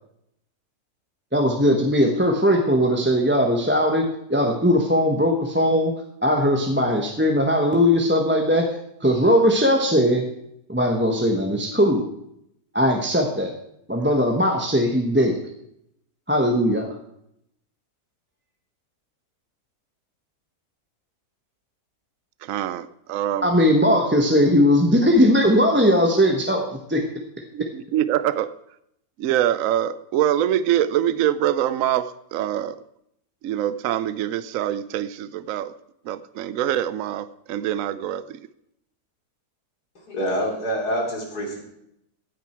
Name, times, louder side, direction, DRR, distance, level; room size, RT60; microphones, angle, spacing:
voice 1, 1.3-5.9 6.2-8.7 9.0-10.3 10.7-12.1 12.7-13.5 13.9-15.4 16.3-16.9 23.4-26.6 26.9-27.0, equal, 10° right, 1 dB, 1.1 m, -19 dB
voice 2, 22.4-23.5 27.5-28.5 29.2-32.8 33.4-35.7 36.0-38.4, right 11 dB, 65° right, 15 dB, 1.0 m, -24 dB
voice 3, 40.1-41.6, equal, 90° left, 0 dB, 3.5 m, -26 dB
15.5 x 9.3 x 4.5 m, 0.75 s
omnidirectional pair, 1.6 m